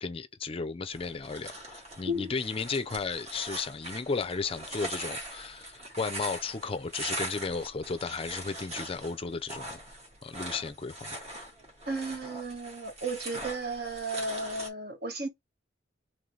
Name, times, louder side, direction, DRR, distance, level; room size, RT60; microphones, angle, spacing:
voice 1, 0.0-9.8 10.2-11.2, left 4 dB, 30° left, 0.4 m, -34 dB
sound 1, 0.9-14.7, right 1 dB, 35° right, 1.6 m, -41 dB
voice 2, 11.9-15.3, right 1 dB, 55° right, 1.2 m, -34 dB
3.8 x 3.3 x 3.2 m
head